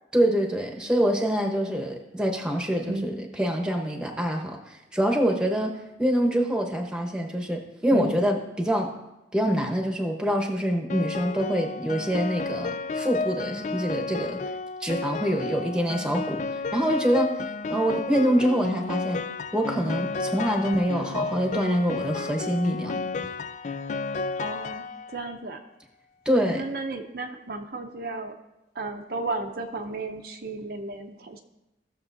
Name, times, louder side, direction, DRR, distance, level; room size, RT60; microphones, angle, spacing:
voice 1, 0.1-8.9 9.3-14.4 14.8-17.3 17.7-19.2 19.5-23.0 26.2-26.7, equal, 5° right, 1 dB, 1.0 m, -25 dB
Piano, 10.9-25.3, left 4 dB, 40° left, 0.3 m, -32 dB
voice 2, 24.4-24.9 25.1-25.6 26.6-28.3 28.7-31.4, right 2 dB, 55° right, 4 dB, 0.7 m, -33 dB
16.5 x 6.8 x 2.7 m, 0.96 s
head